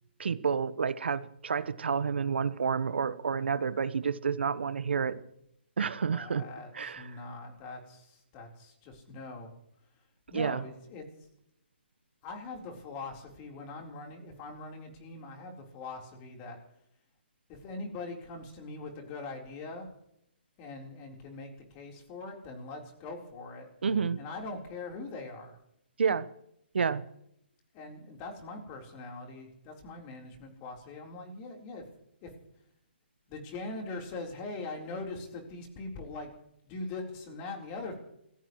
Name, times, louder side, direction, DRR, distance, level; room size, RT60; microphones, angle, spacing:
voice 1, 0.2-5.2 5.8-6.4 6.7-7.2 10.3-10.7 23.8-24.2 26.0-26.3 26.7-27.0, right 6 dB, 70° right, 14 dB, 1.1 m, -29 dB
voice 2, 6.1-9.5 10.3-11.0 12.2-16.6 17.5-19.9 20.6-23.7 24.2-25.6 27.7-31.8 32.2-32.3 33.3-36.3 36.6-38.0, left 3 dB, 30° left, 2 dB, 4.1 m, -42 dB
28.5 x 16.0 x 3.2 m, 0.78 s
hypercardioid pair, 140°, 6 cm